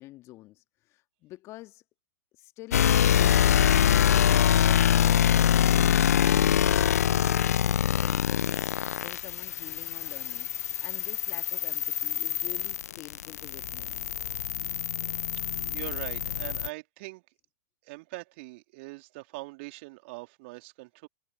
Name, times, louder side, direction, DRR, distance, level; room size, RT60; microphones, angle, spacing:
voice 1, 0.0-1.8 2.4-4.8 9.0-10.5 10.8-13.9, left 17 dB, 30° left, 1.8 m, -47 dB
sound 1, 2.7-16.7, left 10 dB, 60° left, 0.8 m, -24 dB
voice 2, 15.7-17.2 17.8-21.1, right 24 dB, 40° right, 3.2 m, -42 dB
figure-of-eight pair, 110°, 9 cm